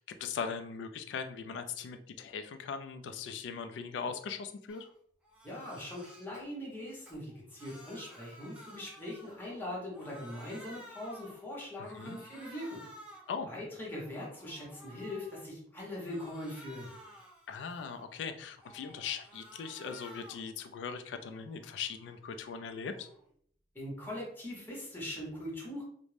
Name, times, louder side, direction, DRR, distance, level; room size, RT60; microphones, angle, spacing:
voice 1, 0.0-4.9 11.8-12.2 13.3-13.5 17.5-23.1, left 6 dB, 90° left, 8 dB, 0.3 m, -40 dB
Crying sobbing, 4.7-4.9 5.2-6.4 6.9-9.7 9.9-11.5 11.8-13.4 13.8-15.4 15.8-18.2 18.6-20.5 20.9-23.3, equal, 5° right, 0.6 m, -54 dB
voice 2, 5.4-12.8 13.5-16.9 23.7-25.8, left 1 dB, 10° left, -5 dB, 1.0 m, -41 dB
2.5 x 2.1 x 3.2 m, 0.63 s
head